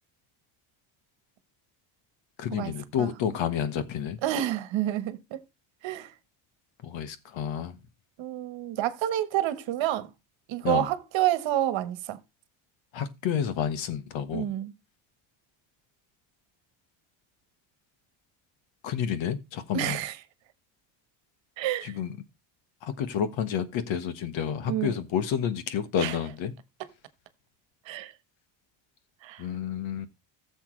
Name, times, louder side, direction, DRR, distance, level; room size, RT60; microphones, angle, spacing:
voice 1, 2.4-4.2 6.8-7.8 10.6-10.9 12.9-14.5 18.8-20.0 21.8-22.2 22.8-26.5 29.4-30.1, left 8 dB, 65° left, 1.5 m, -30 dB
voice 2, 4.2-5.4 5.8-6.1 8.2-10.1 10.5-12.2 14.3-14.7 19.7-20.2 21.6-21.9 24.7-25.0 26.0-26.2 27.9-28.1 29.2-29.4, right 13 dB, 60° right, 1.3 m, -29 dB
14.5 x 7.2 x 3.2 m
cardioid pair, 120°, 49 cm